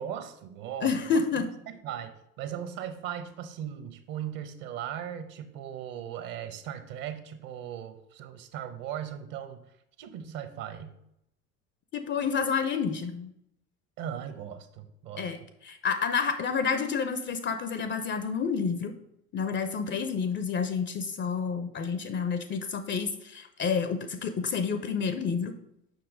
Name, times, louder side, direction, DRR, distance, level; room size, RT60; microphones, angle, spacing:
voice 1, 0.0-9.6 10.0-11.0 14.0-15.3, right 9 dB, 45° right, 10 dB, 0.9 m, -38 dB
voice 2, 0.8-1.5 11.9-13.3 15.2-15.4 15.6-18.9 19.3-25.5, left 6 dB, 25° left, 9 dB, 0.5 m, -29 dB
7.2 x 5.8 x 3.8 m, 0.78 s
figure-of-eight pair, 70°, 48 cm